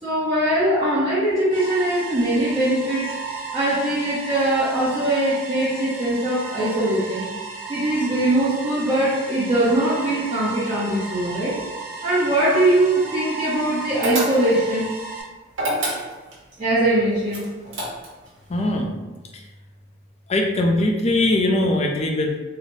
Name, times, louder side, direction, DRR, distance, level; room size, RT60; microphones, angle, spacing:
voice 1, 0.0-3.1 3.5-7.3 7.7-11.5 12.0-14.9 16.6-17.5, right 1 dB, 25° right, -12 dB, 0.8 m, -21 dB
sound 1, 1.5-15.2, right 4 dB, 50° right, 1.1 m, -34 dB
sound 2, 14.0-14.7 15.5-16.4 17.3-18.3, right 1 dB, 70° right, 1.0 m, -26 dB
voice 2, 18.5-18.9 19.3-19.4 20.3-22.4, left 1 dB, 30° left, 2 dB, 0.4 m, -21 dB
3.8 x 2.1 x 3.1 m, 1.2 s
head